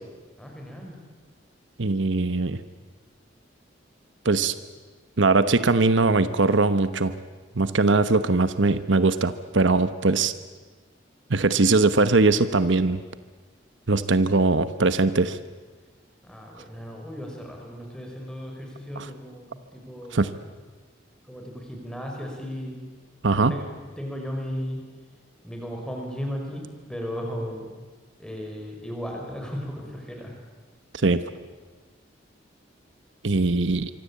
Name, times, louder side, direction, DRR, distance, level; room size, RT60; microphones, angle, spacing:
voice 1, 0.4-1.0 16.2-20.2 21.3-22.8 23.5-24.8 25.4-27.8 28.2-30.3 33.4-33.6, equal, 5° left, 1 dB, 5.7 m, -35 dB
voice 2, 1.8-2.6 4.2-4.5 5.2-7.1 7.5-10.3 11.3-13.0 13.9-15.4 20.1-20.3 23.2-23.5 31.0-31.2 33.2-33.9, right 3 dB, 75° right, 12 dB, 1.1 m, -21 dB
26.0 x 24.0 x 8.6 m, 1.3 s
head